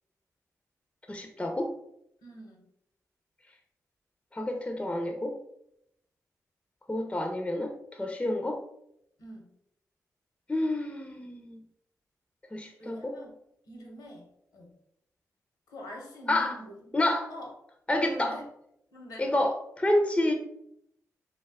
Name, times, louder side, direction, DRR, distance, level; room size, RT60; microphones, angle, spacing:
voice 1, 1.1-1.7 4.3-5.4 6.9-7.7 8.0-8.6 10.5-11.6 12.5-13.2 16.3-16.6 16.9-17.3 17.9-18.4 19.2-20.3, left 1 dB, 15° left, 4 dB, 0.4 m, -28 dB
voice 2, 2.2-2.6 9.2-9.5 12.8-13.3 13.7-14.7 15.7-16.8 17.3-17.5 18.0-18.4 18.9-19.3, equal, 85° left, 0 dB, 0.8 m, -45 dB
2.5 x 2.2 x 3.4 m, 0.76 s
supercardioid pair, 40°, 7 cm